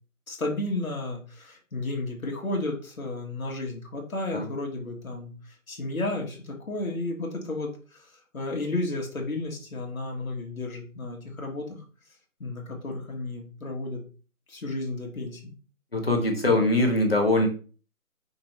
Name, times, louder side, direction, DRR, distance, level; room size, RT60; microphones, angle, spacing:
voice 1, 0.3-11.8 12.4-14.0 14.5-15.5, left 2 dB, 70° left, 0 dB, 1.4 m, -33 dB
voice 2, 15.9-17.5, left 2 dB, 40° left, 2 dB, 0.9 m, -22 dB
5.2 x 3.0 x 3.1 m, 0.37 s
figure-of-eight pair, 175°, 44 cm